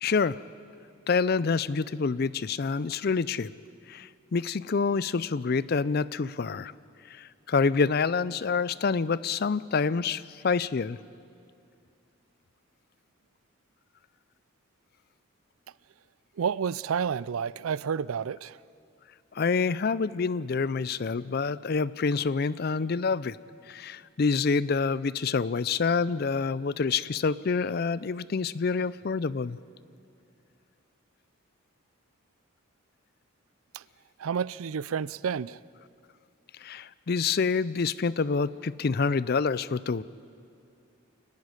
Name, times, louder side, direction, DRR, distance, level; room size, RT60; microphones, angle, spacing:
voice 1, 0.0-0.4 1.1-3.5 3.9-6.7 7.1-11.0 19.3-23.4 23.7-29.6 36.6-40.0, left 5 dB, 50° left, 0.4 m, -27 dB
voice 2, 16.4-18.6 33.7-33.8 34.2-35.6, right 7 dB, 85° right, 0.4 m, -30 dB
29.0 x 10.5 x 9.9 m
head